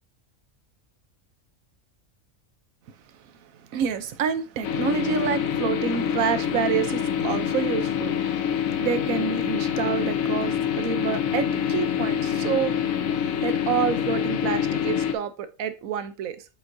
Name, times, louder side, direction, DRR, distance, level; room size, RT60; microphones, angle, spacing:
voice 1, 3.2-8.1 8.8-12.7 13.4-16.5, right 8 dB, 80° right, 1.1 m, -28 dB
sound 1, 4.6-15.1, left 9 dB, 75° left, 1.1 m, -26 dB
8.1 x 5.4 x 2.7 m
omnidirectional pair, 1.4 m